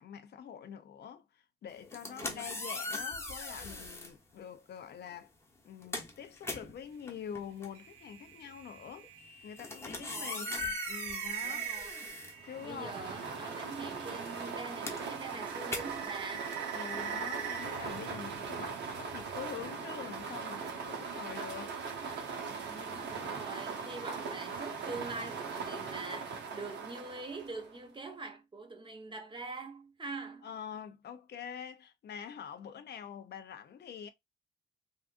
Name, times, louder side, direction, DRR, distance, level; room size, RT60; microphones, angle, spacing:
voice 1, 0.0-5.3 5.7-9.1 9.4-11.7 12.5-13.0 16.7-21.8 30.4-34.1, left 8 dB, 60° left, 0.6 m, -45 dB
sound 1, 1.8-4.2 5.0-5.2 5.6-13.1 13.4-18.0, left 3 dB, 15° left, 1.0 m, -41 dB
voice 2, 2.0-2.5 9.8-10.7 11.4-12.2 12.6-16.6 22.5-30.5, right 3 dB, 25° right, 0.9 m, -44 dB
sound 2, 7.7-14.6 14.9-18.9, right 9 dB, 85° right, 0.7 m, -44 dB
sound 3, 12.4-27.8, right 5 dB, 60° right, 1.0 m, -40 dB
3.6 x 2.4 x 2.5 m
cardioid pair, 90°, 20 cm